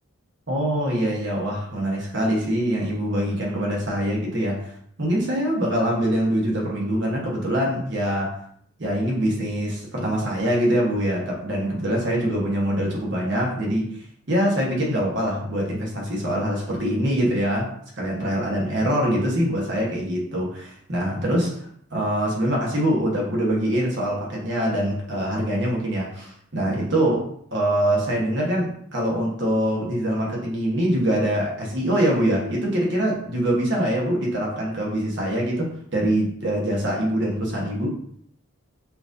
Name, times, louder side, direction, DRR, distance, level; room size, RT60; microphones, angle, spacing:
voice 1, 0.5-4.7 5.0-8.3 8.8-13.9 14.3-17.7 18.0-21.6 21.9-27.2 27.5-37.9, right 1 dB, 55° right, -2 dB, 1.1 m, -24 dB
5.7 x 2.5 x 2.6 m, 0.65 s
head